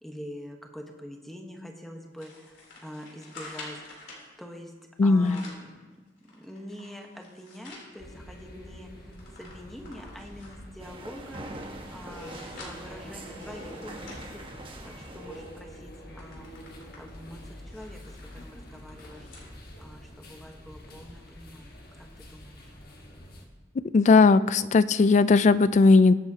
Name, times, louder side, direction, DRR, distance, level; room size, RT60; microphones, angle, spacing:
voice 1, 0.0-3.8 4.4-4.7 5.0-5.9 6.2-14.4 14.8-16.6 17.0-19.3 19.8-22.7, equal, ahead, 2 dB, 1.1 m, -45 dB
sound 1, 2.2-4.3 5.0-5.7 6.2-7.9 8.4-8.5 8.7-10.7 11.3-15.0 15.4-15.6 15.9-19.5 19.9-20.0 20.9-21.0, left 3 dB, 85° left, 3.4 m, -49 dB
voice 2, 5.0-5.4 23.9-26.1, left 3 dB, 40° left, 15 dB, 0.3 m, -18 dB
sound 2, 8.0-23.5, equal, 55° left, 1.5 m, -46 dB
sound 3, 10.8-15.7, right 2 dB, 30° right, 1.1 m, -43 dB
22.5 x 7.8 x 2.8 m, 1.3 s
head